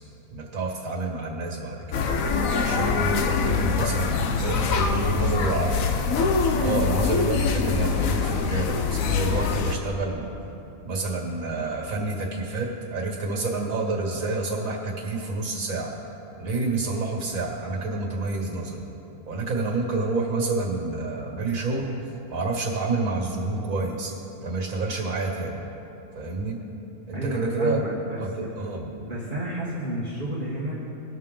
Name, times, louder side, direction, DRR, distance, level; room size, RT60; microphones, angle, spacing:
voice 1, 0.3-2.1 2.6-5.8 6.6-10.3 10.8-15.9 16.4-18.8 19.3-21.9 22.3-24.1 24.4-25.6 26.2-26.6 27.1-27.8 28.2-28.3 28.6-28.9, right 3 dB, 65° right, -1 dB, 2.2 m, -28 dB
sound 1, 1.9-9.8, left 5 dB, 70° left, 1.1 m, -24 dB
voice 2, 6.5-6.8 27.1-28.6 28.8-30.7, right 1 dB, 35° right, -7 dB, 1.5 m, -31 dB
19.0 x 6.5 x 3.8 m, 3.0 s
omnidirectional pair, 1.6 m